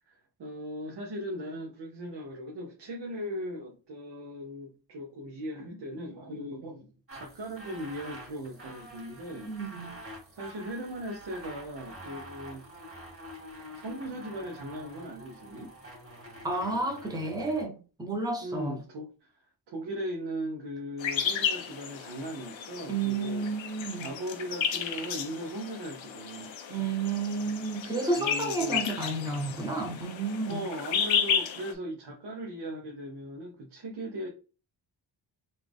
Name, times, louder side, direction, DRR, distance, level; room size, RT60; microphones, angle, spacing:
voice 1, 0.1-9.5 10.4-12.6 13.7-15.7 18.4-19.1 19.7-23.5 24.0-26.5 28.2-28.9 30.5-34.3, equal, 65° right, 1.0 m, -38 dB
sound 1, 7.1-17.6, equal, 30° right, 2.1 m, -47 dB
voice 2, 9.5-9.9 16.4-18.7 22.9-24.1 26.7-30.6, right 3 dB, 10° right, 0.9 m, -31 dB
sound 2, 21.0-31.7, left 7 dB, 80° left, 0.8 m, -33 dB
4.1 x 2.5 x 3.4 m
wide cardioid pair, 110°, 45 cm